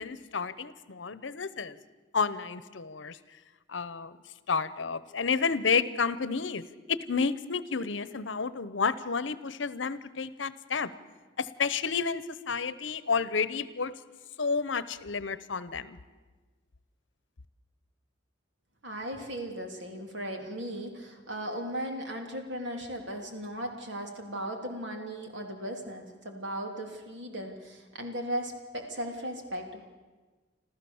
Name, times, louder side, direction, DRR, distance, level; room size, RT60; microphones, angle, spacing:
voice 1, 0.0-1.8 2.1-3.2 3.7-4.2 4.5-6.6 6.9-10.9 11.4-13.9 14.4-16.0, left 5 dB, 75° left, 16 dB, 0.9 m, -30 dB
voice 2, 18.8-29.8, equal, 70° right, 3 dB, 3.1 m, -37 dB
26.5 x 14.5 x 7.1 m, 1.3 s
head